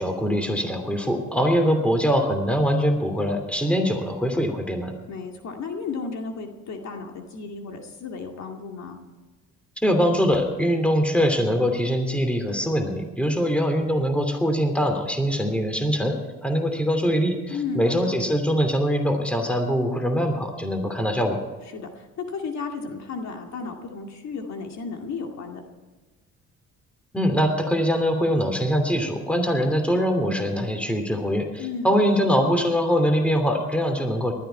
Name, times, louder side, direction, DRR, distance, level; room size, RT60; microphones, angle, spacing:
voice 1, 0.0-4.9 9.8-21.4 27.1-34.3, equal, 5° left, 5 dB, 2.9 m, -23 dB
voice 2, 5.1-9.0 17.5-18.2 21.7-25.6 31.6-32.2, left 5 dB, 65° left, 3 dB, 2.3 m, -34 dB
19.5 x 13.0 x 4.6 m, 1.3 s
cardioid pair, 90°, 30 cm